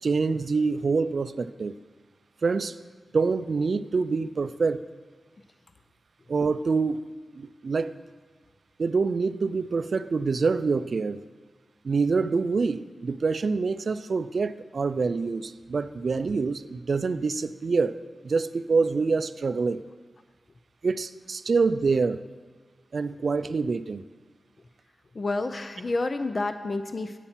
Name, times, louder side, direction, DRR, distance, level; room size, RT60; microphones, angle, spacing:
voice 1, 0.0-1.7 2.4-2.8 3.1-4.8 6.3-7.0 7.4-7.9 8.8-11.2 11.8-19.8 20.8-22.2 22.9-24.0, right 4 dB, 60° right, 14 dB, 0.4 m, -26 dB
voice 2, 25.1-27.2, left 2 dB, 40° left, 9 dB, 0.5 m, -29 dB
9.1 x 8.7 x 5.7 m, 1.5 s
wide cardioid pair, 95°, 0 cm